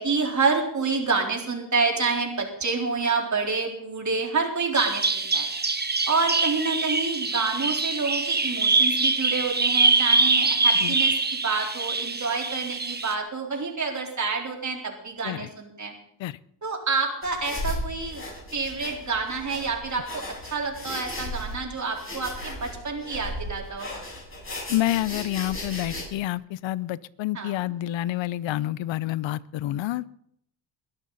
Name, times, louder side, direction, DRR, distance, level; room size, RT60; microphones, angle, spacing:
voice 1, 0.0-5.5 6.1-15.9 16.6-18.2 18.5-20.2 20.5-23.9 27.3-27.7, right 4 dB, 40° right, 1 dB, 3.9 m, -28 dB
Bird vocalization bird call bird song, 4.8-13.1, right 3 dB, 20° right, 1.4 m, -24 dB
sound 1, 17.2-26.0, left 1 dB, 30° left, 6.9 m, -36 dB
voice 2, 24.7-30.2, left 14 dB, 80° left, 20 dB, 0.7 m, -28 dB
22.0 x 12.0 x 4.1 m, 0.72 s
cardioid pair, 85°, 45 cm